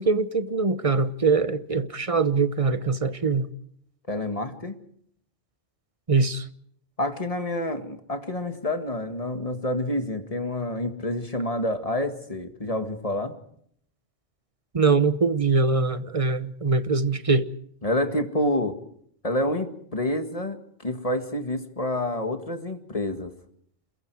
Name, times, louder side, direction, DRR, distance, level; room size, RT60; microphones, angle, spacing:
voice 1, 0.0-3.5 6.1-6.5 14.7-17.5, right 4 dB, 30° right, 0.9 m, -23 dB
voice 2, 4.1-4.7 7.0-13.4 17.8-18.8 19.2-23.3, left 1 dB, 30° left, 1.9 m, -28 dB
28.5 x 22.0 x 4.7 m
omnidirectional pair, 1.3 m